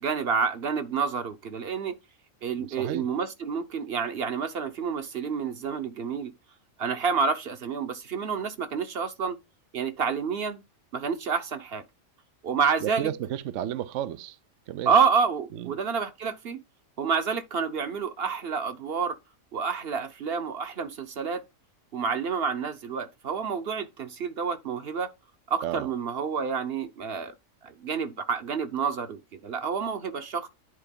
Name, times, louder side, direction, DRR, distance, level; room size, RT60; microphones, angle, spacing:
voice 1, 0.0-2.0 2.4-6.3 6.8-9.4 9.7-10.6 10.9-11.8 12.4-13.1 14.9-16.6 17.0-19.2 19.5-21.4 21.9-25.1 25.5-27.3 27.6-30.5, right 6 dB, 50° right, 1.2 m, -28 dB
voice 2, 2.6-3.1 12.8-14.4 14.7-14.9 15.5-15.7 25.6-25.9, right 11 dB, 70° right, 0.9 m, -32 dB
9.8 x 4.5 x 5.3 m
omnidirectional pair, 1.4 m